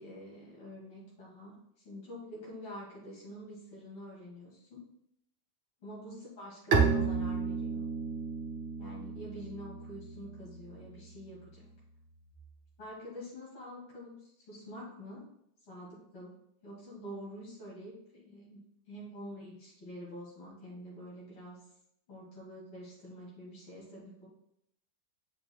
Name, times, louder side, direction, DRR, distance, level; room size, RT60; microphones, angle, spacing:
voice 1, 0.0-4.9 5.8-7.8 8.8-11.7 12.8-15.3 15.6-16.3 16.6-21.6 22.1-24.3, equal, 80° left, -6 dB, 3.1 m, -47 dB
Bowed string instrument, 6.7-12.3, right 5 dB, 80° right, 0.5 m, -33 dB
8.0 x 6.6 x 2.3 m, 0.75 s
omnidirectional pair, 2.3 m